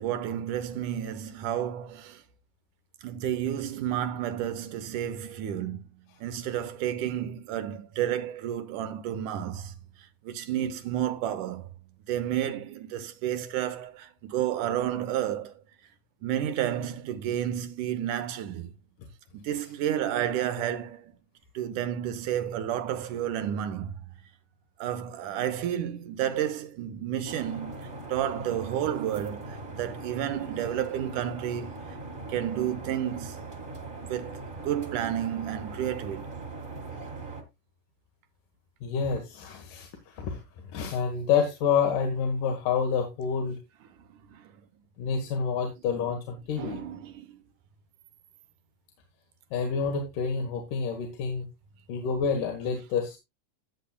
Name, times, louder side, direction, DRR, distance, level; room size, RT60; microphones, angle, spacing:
voice 1, 0.0-2.2 3.0-5.8 6.2-9.7 10.2-11.7 12.1-15.5 16.2-18.7 19.3-21.1 21.5-23.9 24.8-31.8 32.3-33.4 34.0-36.3 44.1-44.4 46.6-47.4, right 10 dB, 75° right, 2.5 m, -31 dB
sound 1, 27.2-37.4, right 3 dB, 25° right, 1.3 m, -40 dB
voice 2, 38.8-40.4 40.7-43.6 45.0-46.8 49.5-51.5 51.9-53.2, left 6 dB, 85° left, 3.0 m, -28 dB
14.0 x 8.4 x 2.3 m
omnidirectional pair, 3.6 m